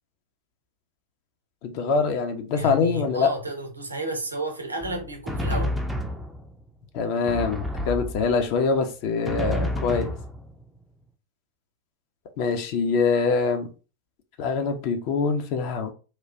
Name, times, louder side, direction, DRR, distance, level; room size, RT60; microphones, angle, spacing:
voice 1, 1.6-3.3 6.9-10.1 12.4-13.7 14.4-15.9, left 5 dB, 45° left, 0.6 m, -24 dB
voice 2, 2.5-5.7, right 1 dB, 80° right, 0.7 m, -31 dB
Drum, 4.8-6.7 7.3-8.6 9.3-10.8, left 1 dB, ahead, 0.4 m, -30 dB
3.1 x 2.3 x 2.6 m
figure-of-eight pair, 90°, 0 cm